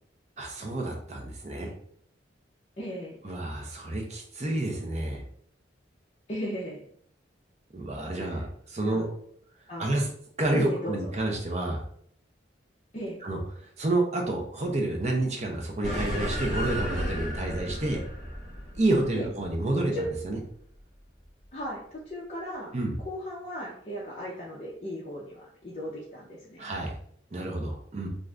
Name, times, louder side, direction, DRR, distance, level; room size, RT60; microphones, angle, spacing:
voice 1, 0.4-1.7 3.2-5.2 7.7-9.1 9.8-10.1 10.4-11.8 13.2-13.4 13.8-18.0 18.7-19.9 20.2-20.4 22.7-23.0 26.6-26.9 27.3-28.1, right 2 dB, 35° right, 1 dB, 0.6 m, -29 dB
voice 2, 2.8-3.4 6.3-6.8 8.2-8.4 8.8-9.1 9.7-9.8 10.5-11.1 12.9-13.2 19.1-19.3 19.9-20.1 21.5-22.7 23.1-26.7, equal, 35° left, -6 dB, 0.6 m, -36 dB
sound 1, 15.8-20.6, equal, ahead, 1.0 m, -34 dB
2.5 x 2.4 x 3.2 m, 0.62 s
head